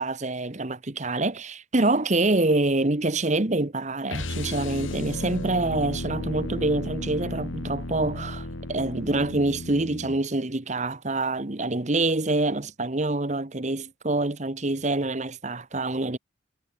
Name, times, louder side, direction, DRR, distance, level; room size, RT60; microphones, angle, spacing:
voice 1, 0.0-16.2, right 2 dB, 35° right, 1.2 m, -26 dB
sound 1, 4.1-10.2, left 1 dB, 80° left, 2.5 m, -34 dB
head